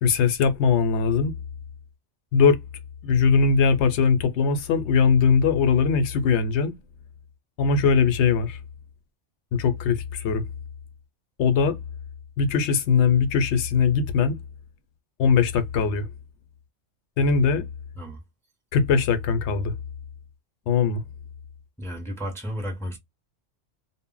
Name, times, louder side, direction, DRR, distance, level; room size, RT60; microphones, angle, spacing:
voice 1, 0.0-1.3 2.3-2.6 3.0-6.7 7.6-8.6 9.5-10.4 11.4-11.8 12.4-14.4 15.2-16.1 17.2-17.6 18.7-19.7 20.7-21.0, left 5 dB, 70° left, 0.8 m, -20 dB
voice 2, 21.8-23.0, equal, 5° left, 0.5 m, -33 dB
2.1 x 2.0 x 3.7 m
omnidirectional pair, 1.3 m